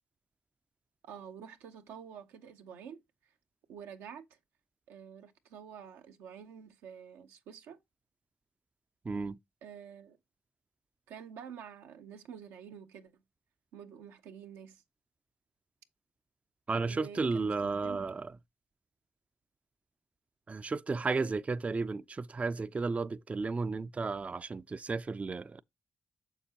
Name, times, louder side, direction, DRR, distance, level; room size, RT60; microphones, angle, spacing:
voice 1, 1.0-3.0 3.7-4.4 4.9-7.8 9.6-10.2 11.1-13.2 13.7-14.8 16.9-18.1 21.0-21.3, right 7 dB, 90° right, 0.6 m, -48 dB
voice 2, 9.0-9.4 16.7-18.3 20.5-25.6, right 4 dB, 30° right, 0.3 m, -33 dB
6.8 x 6.6 x 2.8 m
supercardioid pair, 50°, 4 cm